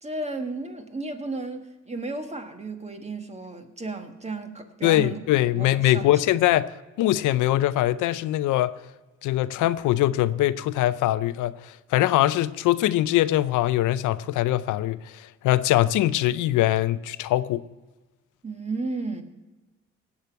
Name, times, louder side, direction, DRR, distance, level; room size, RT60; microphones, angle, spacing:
voice 1, 0.0-6.2 18.4-19.2, right 3 dB, 20° right, 6 dB, 1.5 m, -34 dB
voice 2, 4.8-8.7 9.2-17.6, left 14 dB, 85° left, 15 dB, 0.5 m, -22 dB
17.5 x 8.2 x 4.6 m, 1.2 s
cardioid pair, 90°, 30 cm